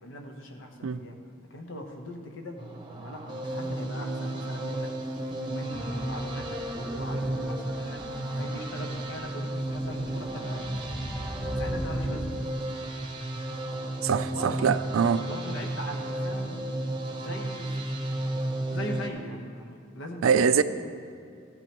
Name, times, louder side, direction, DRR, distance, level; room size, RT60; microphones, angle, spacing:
voice 1, 0.0-1.2 1.5-4.9 5.4-8.0 8.3-10.7 11.5-12.4 14.3-14.7 15.2-16.7 17.1-17.8 18.7-20.6, left 1 dB, 65° left, 1.0 m, -40 dB
sound 1, 2.6-19.1, right 1 dB, 25° right, 0.9 m, -33 dB
sound 2, 5.7-12.2, equal, ahead, 0.6 m, -39 dB
voice 2, 14.0-15.3 20.2-20.6, right 6 dB, 75° right, 0.4 m, -23 dB
13.5 x 10.5 x 3.0 m
head